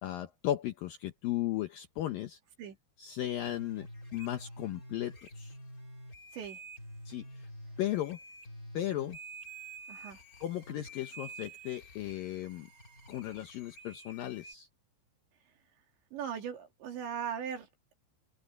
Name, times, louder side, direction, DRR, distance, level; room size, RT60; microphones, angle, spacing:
voice 1, 0.0-2.4 3.0-5.6 7.1-7.5 7.8-8.2 8.7-9.2 10.4-12.7 13.1-14.7, left 13 dB, 75° left, 2.1 m, -36 dB
sound 1, 3.4-14.5, right 1 dB, 20° left, 4.4 m, -48 dB
voice 2, 9.9-10.2 16.1-17.9, right 8 dB, 75° right, 5.3 m, -39 dB
open air
omnidirectional pair, 5.3 m